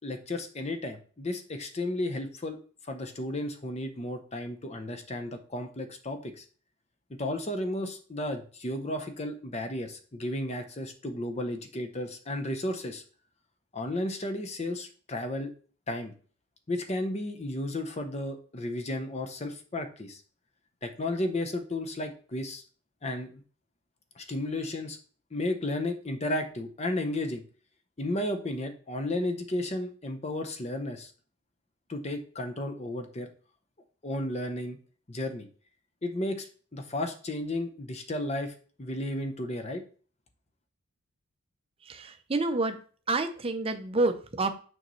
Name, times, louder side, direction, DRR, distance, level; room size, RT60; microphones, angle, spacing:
voice 1, 0.0-2.6 2.9-6.4 7.1-13.0 13.7-15.5 15.9-16.1 16.7-20.2 20.8-22.6 23.0-23.4 24.2-25.0 25.3-27.4 28.0-31.1 31.9-33.3 34.0-34.8 35.1-35.5 36.0-38.5 38.8-39.8, left 1 dB, 30° left, 6 dB, 0.7 m, -33 dB
voice 2, 41.8-42.8 43.1-44.5, right 2 dB, 25° right, 7 dB, 0.6 m, -28 dB
6.4 x 5.3 x 3.1 m, 0.41 s
head